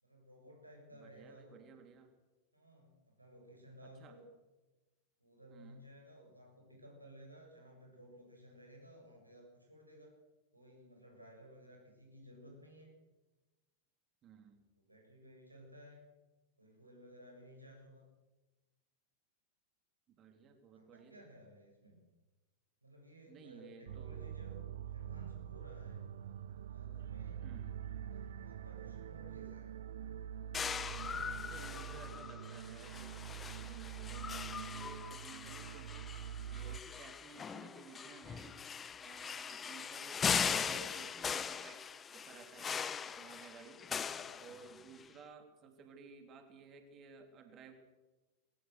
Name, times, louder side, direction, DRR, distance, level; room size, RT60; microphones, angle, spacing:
voice 1, 0.0-1.6 2.5-4.3 5.2-10.1 10.5-12.9 14.7-16.1 16.6-18.1 20.7-22.0 22.8-26.0 26.7-27.4 28.1-29.7 30.6-32.2 44.0-44.8, equal, 85° right, 0 dB, 7.5 m, -57 dB
voice 2, 0.9-2.1 3.8-4.2 5.5-5.8 14.2-14.6 20.2-21.2 23.3-24.2 27.4-27.8 31.4-33.1 33.6-36.1 36.5-38.6 39.0-41.8 42.1-43.8 44.4-47.7, right 5 dB, 30° right, 6 dB, 3.5 m, -56 dB
sound 1, 23.9-36.8, right 9 dB, 60° right, 0.6 m, -45 dB
sound 2, 30.5-45.0, left 7 dB, 20° left, 1.0 m, -40 dB
22.0 x 19.0 x 6.6 m, 1.1 s
figure-of-eight pair, 90°, 0 cm